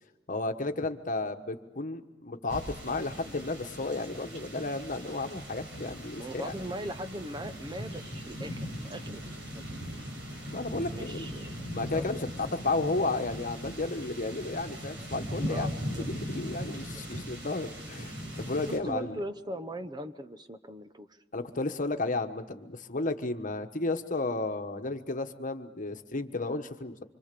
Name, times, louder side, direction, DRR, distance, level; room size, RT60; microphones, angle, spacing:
voice 1, 0.3-6.5 10.5-11.3 11.7-15.7 16.0-19.2 21.3-26.9, left 2 dB, 45° left, 7 dB, 1.3 m, -33 dB
sound 1, 2.5-18.8, equal, 70° right, 6.2 m, -39 dB
voice 2, 6.2-9.6 10.9-12.1 15.5-16.1 16.7-17.0 18.7-21.1 24.3-24.4, right 1 dB, 25° right, 9 dB, 0.9 m, -40 dB
26.0 x 26.0 x 6.9 m, 1.1 s
head